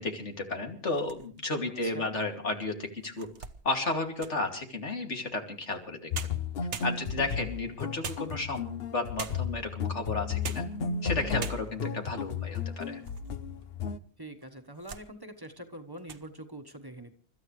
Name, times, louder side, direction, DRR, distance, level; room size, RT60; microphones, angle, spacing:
voice 1, 0.0-3.3 3.6-6.1 6.8-10.6 11.0-13.0, left 3 dB, 90° left, 3 dB, 3.0 m, -33 dB
sound 1, 0.8-1.6 2.2-2.3 2.8-4.5 5.8-5.9 6.1-7.4 8.0-8.7 9.2-9.6 10.2-10.8 11.1-11.2 11.4-12.0 12.5-13.3 13.6-13.7 14.4-15.1 15.4-15.7 16.0-16.3, right 6 dB, 80° right, 1.4 m, -42 dB
sound 2, 6.1-14.0, left 6 dB, 60° left, 1.1 m, -34 dB
voice 2, 14.2-17.1, right 1 dB, 20° right, 6 dB, 1.4 m, -44 dB
30.0 x 13.5 x 3.3 m, 0.42 s
omnidirectional pair, 1.2 m